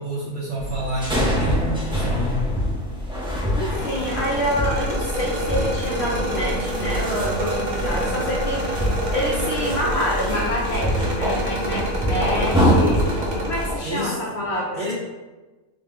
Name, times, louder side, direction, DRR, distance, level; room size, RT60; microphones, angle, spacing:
voice 1, 0.0-2.5 13.8-14.2 14.7-14.9, equal, 45° right, -7 dB, 0.8 m, -28 dB
sound 1, 0.6-13.8, equal, 5° right, 0.5 m, -25 dB
voice 2, 3.5-13.0 13.4-14.8, equal, 65° left, -3 dB, 0.7 m, -27 dB
sound 2, 3.7-13.7, right 1 dB, 85° right, 1.3 m, -28 dB
3.6 x 2.1 x 3.5 m, 1.2 s
omnidirectional pair, 1.5 m